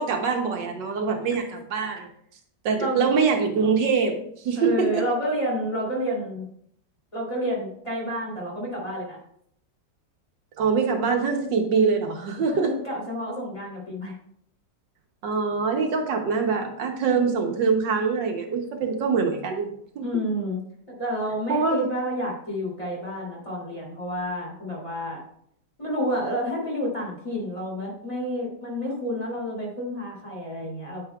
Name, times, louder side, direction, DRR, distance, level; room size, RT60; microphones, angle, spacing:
voice 1, 0.0-2.1 2.6-5.0 10.6-12.7 15.2-19.7 20.0-20.2 21.5-21.8, right 5 dB, 75° right, 4 dB, 1.5 m, -24 dB
voice 2, 4.5-6.5 7.1-9.2 12.4-14.1 20.0-20.6 20.9-25.2 25.8-31.1, equal, 15° left, -4 dB, 2.8 m, -29 dB
9.3 x 9.0 x 2.3 m, 0.68 s
omnidirectional pair, 2.0 m